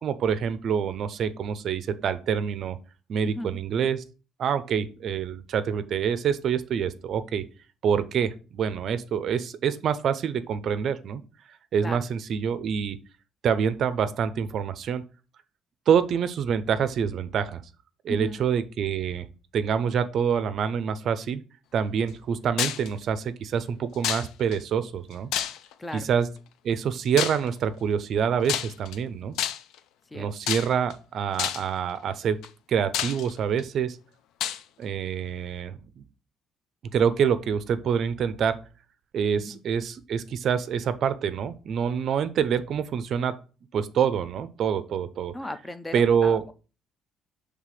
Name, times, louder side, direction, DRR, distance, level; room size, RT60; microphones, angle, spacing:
voice 1, 0.0-2.8 3.1-4.0 4.4-7.4 7.8-11.2 11.7-13.0 13.4-15.0 15.9-17.6 18.0-19.3 19.5-21.4 21.7-25.3 25.9-26.3 26.6-29.4 30.1-32.4 32.7-34.0 34.8-36.0 36.9-38.6 39.1-43.4 43.7-45.3 45.9-46.4, right 7 dB, 45° right, 13 dB, 0.5 m, -26 dB
voice 2, 3.2-3.6 11.8-12.0 18.1-18.4 25.8-26.1 30.1-30.3 39.4-39.6 45.3-46.5, left 1 dB, 10° left, 11 dB, 0.4 m, -36 dB
sound 1, 22.6-22.9 24.0-24.6 25.3-25.9 27.2-27.5 28.5-29.0 29.4-29.8 30.5-30.9 31.4-31.7 32.4-32.5 32.9-33.6 34.4-34.6, left 10 dB, 75° left, 0.5 m, -29 dB
5.8 x 3.3 x 4.8 m, 0.35 s
cardioid pair, 155°, 0 cm